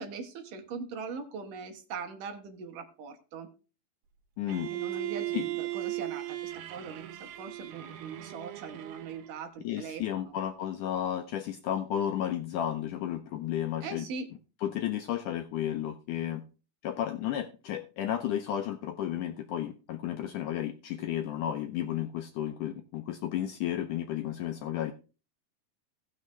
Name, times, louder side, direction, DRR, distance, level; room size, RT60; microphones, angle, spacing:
voice 1, 0.0-3.5 4.7-10.4 13.8-14.3, right 5 dB, 65° right, 5 dB, 2.7 m, -41 dB
voice 2, 4.4-4.7 5.3-5.5 9.6-14.1 14.6-16.4 16.8-24.9, left 11 dB, 80° left, 6 dB, 1.9 m, -33 dB
Bowed string instrument, 4.5-9.4, right 16 dB, 80° right, 2.7 m, -37 dB
16.5 x 6.4 x 3.3 m, 0.32 s
omnidirectional pair, 4.3 m